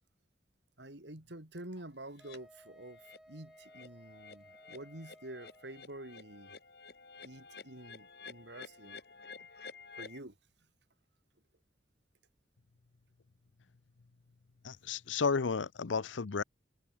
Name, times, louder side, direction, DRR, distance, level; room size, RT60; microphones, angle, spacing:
voice 1, 0.8-3.0 3.3-6.6 7.2-9.0 10.0-10.3, right 1 dB, 70° right, 3.4 m, -48 dB
sound 1, 2.2-2.4 2.8-3.2 3.5-10.2, left 5 dB, 55° left, 2.3 m, -52 dB
Wind instrument woodwind instrument, 2.2-5.8, equal, 5° right, 4.6 m, -59 dB
voice 2, 14.6-16.4, left 5 dB, 90° left, 0.7 m, -32 dB
head